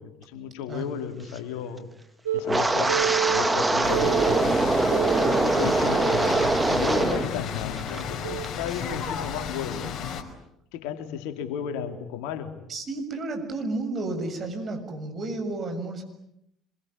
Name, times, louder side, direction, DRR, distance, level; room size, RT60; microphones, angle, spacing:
voice 1, 0.0-1.9 2.3-4.8 5.3-9.9 10.7-12.6, left 8 dB, 70° left, 7 dB, 3.2 m, -34 dB
Telephone, 2.3-2.4 2.9-3.4 3.9-4.4 4.9-5.4 5.9-6.4 6.9-7.2 8.2-8.4, right 10 dB, 85° right, 1.5 m, -28 dB
Wind, 2.4-7.3 7.6-8.0 8.4-8.7, right 2 dB, 20° right, 2.4 m, -23 dB
sound 1, 3.8-10.2, left 7 dB, 50° left, 5.0 m, -33 dB
voice 2, 12.7-16.0, right 2 dB, 40° right, 5 dB, 7.1 m, -32 dB
26.5 x 23.0 x 9.9 m, 0.77 s
hypercardioid pair, 60°, 0 cm